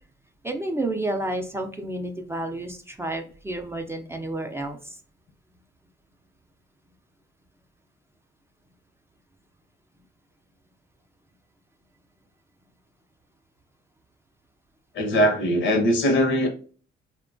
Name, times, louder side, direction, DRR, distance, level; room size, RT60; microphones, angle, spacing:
voice 1, 0.4-5.0, right 1 dB, 10° right, 4 dB, 0.4 m, -30 dB
voice 2, 14.9-16.5, equal, 75° left, 4 dB, 0.8 m, -21 dB
2.9 x 2.2 x 2.5 m, 0.41 s
cardioid pair, 90°, 20 cm